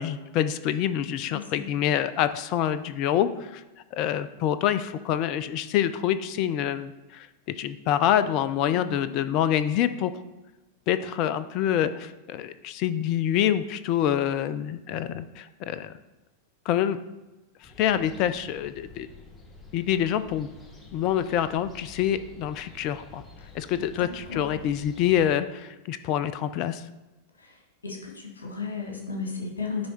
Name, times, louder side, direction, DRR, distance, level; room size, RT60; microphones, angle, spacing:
voice 1, 0.0-3.6 3.9-7.3 7.6-10.1 10.9-15.9 16.7-17.0 17.8-19.1 19.7-20.5 20.9-23.2 23.5-26.8, left 10 dB, 40° left, 13 dB, 0.4 m, -26 dB
voice 2, 1.3-1.7 8.7-9.1 24.0-24.5 27.4-27.5 27.8-29.9, left 4 dB, 75° left, 1 dB, 1.6 m, -35 dB
sound 1, 17.6-25.4, left 2 dB, 15° left, 1.1 m, -49 dB
9.5 x 3.5 x 4.3 m, 1.0 s
figure-of-eight pair, 90°, 0 cm